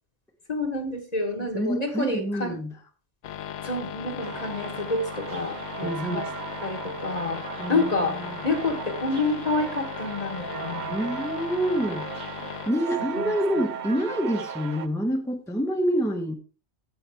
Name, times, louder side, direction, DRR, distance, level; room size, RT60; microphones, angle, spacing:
voice 1, 0.5-2.6 3.6-6.3 6.6-7.4 7.7-8.2 8.4-11.1 13.2-13.4, left 2 dB, 35° left, 4 dB, 1.3 m, -28 dB
voice 2, 1.4-2.8 5.8-6.3 7.6-8.4 10.9-12.1 12.7-16.3, equal, 5° left, 3 dB, 1.0 m, -27 dB
sound 1, 3.2-12.7, left 9 dB, 65° left, 0.9 m, -38 dB
sound 2, 4.2-14.9, right 7 dB, 50° right, 0.6 m, -37 dB
15.0 x 5.7 x 3.4 m, 0.36 s
omnidirectional pair, 1.3 m